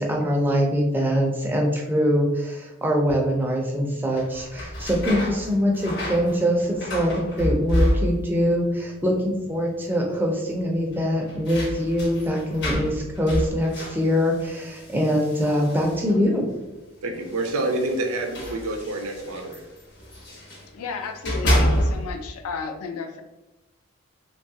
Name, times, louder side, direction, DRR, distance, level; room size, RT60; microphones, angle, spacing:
voice 1, 0.0-16.5, equal, 10° right, -1 dB, 0.4 m, -23 dB
sound 1, 4.1-8.5 8.7-9.4 9.7-9.8 10.9-16.3 17.2-20.7 21.1-22.3, equal, 50° left, 0.7 m, -29 dB
voice 2, 17.0-19.7, right 2 dB, 80° right, 3 dB, 0.5 m, -28 dB
voice 3, 20.7-23.2, left 5 dB, 90° left, 5 dB, 0.4 m, -33 dB
3.0 x 2.3 x 2.7 m, 1.0 s
head